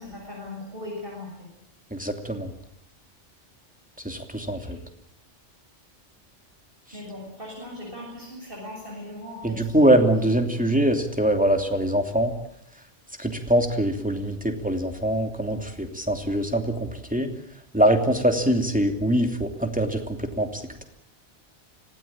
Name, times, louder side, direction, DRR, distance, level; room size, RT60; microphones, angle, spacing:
voice 1, 0.0-1.5 4.5-4.7 6.9-10.1, left 1 dB, 50° right, -2 dB, 7.6 m, -39 dB
voice 2, 1.9-2.5 4.0-4.8 9.4-12.3 13.2-17.3 17.7-20.8, right 1 dB, 5° right, 4 dB, 2.8 m, -23 dB
26.0 x 18.0 x 8.8 m, 0.79 s
omnidirectional pair, 1.2 m